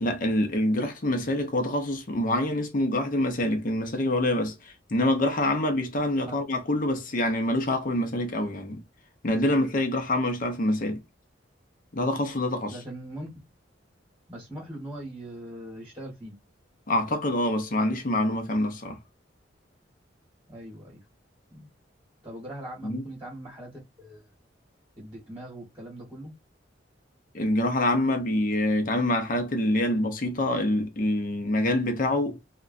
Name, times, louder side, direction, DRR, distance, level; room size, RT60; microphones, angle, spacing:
voice 1, 0.0-8.8 9.2-11.0 11.9-12.8 16.9-19.0 22.8-23.0 27.3-32.4, left 1 dB, 45° left, 0.6 m, -26 dB
voice 2, 12.7-13.3 14.3-16.4 20.5-21.0 21.5-21.7 22.2-24.3 25.0-26.3, right 1 dB, 15° right, 1.1 m, -41 dB
2.9 x 2.1 x 2.4 m
head